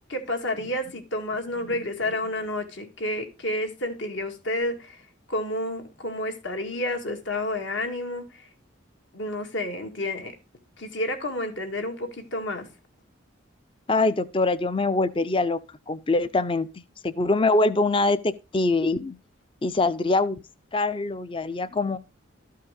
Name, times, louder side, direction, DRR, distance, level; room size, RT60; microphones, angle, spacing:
voice 1, 0.1-5.0 5.3-8.2 9.1-10.3 10.8-12.7, left 1 dB, 65° left, 2.2 m, -30 dB
voice 2, 13.9-15.6 15.9-19.2 19.6-20.4 20.7-22.0, left 2 dB, 25° left, 0.5 m, -24 dB
13.0 x 5.6 x 5.2 m
head